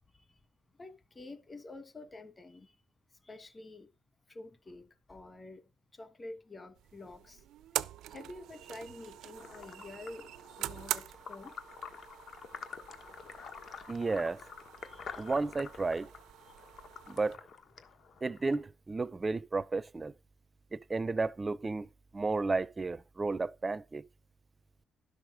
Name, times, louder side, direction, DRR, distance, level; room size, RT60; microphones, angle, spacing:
voice 1, 0.8-2.8 3.2-3.9 4.3-5.6 5.9-7.4 8.1-10.3 10.6-11.5 14.8-15.3 17.1-17.2, left 2 dB, 25° left, 1.4 m, -49 dB
sound 1, 6.8-17.4, right 12 dB, 85° right, 0.4 m, -44 dB
sound 2, 9.4-18.6, left 6 dB, 60° left, 1.3 m, -48 dB
voice 2, 13.9-14.4 15.2-16.1 17.1-17.4 18.2-20.1 20.7-24.1, right 3 dB, 25° right, 0.4 m, -33 dB
11.5 x 6.4 x 4.9 m
cardioid pair, 90°, 0 cm